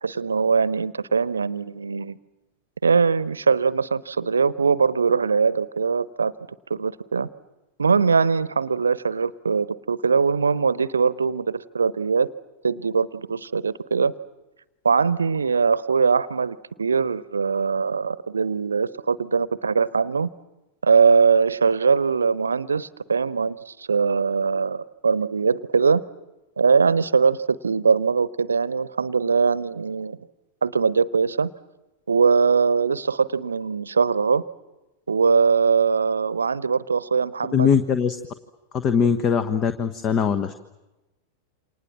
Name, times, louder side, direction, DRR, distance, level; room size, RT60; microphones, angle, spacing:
voice 1, 0.0-2.2 2.8-6.3 6.7-7.3 7.8-12.3 12.6-14.1 14.8-20.3 20.8-26.0 26.6-30.2 30.6-31.5 32.1-34.4 35.1-37.7, right 5 dB, 75° right, 20 dB, 0.9 m, -21 dB
voice 2, 37.5-38.2 38.7-40.5, left 7 dB, 30° left, 12 dB, 1.3 m, -21 dB
29.0 x 27.0 x 7.4 m, 1.0 s
figure-of-eight pair, 90°, 0 cm